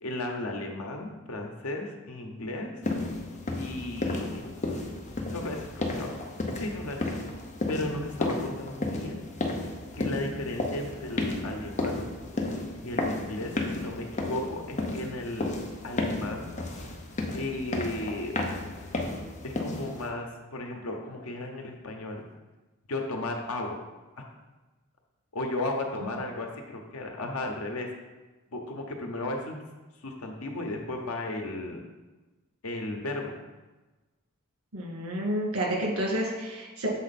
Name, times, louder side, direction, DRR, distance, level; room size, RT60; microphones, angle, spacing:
voice 1, 0.0-2.7 3.6-4.5 5.3-6.1 6.6-7.1 7.7-9.2 9.9-12.1 12.7-15.5 15.8-16.5 17.3-18.3 19.4-22.2 22.9-23.8 24.2-24.3 25.3-27.9 28.5-29.6 30.0-31.8 32.6-33.3, left 2 dB, 85° left, 2 dB, 1.0 m, -35 dB
sound 1, 2.8-20.1, left 2 dB, 35° left, 0.7 m, -33 dB
voice 2, 34.7-36.9, right 1 dB, 85° right, -2 dB, 2.1 m, -30 dB
7.2 x 4.3 x 4.2 m, 1.2 s
head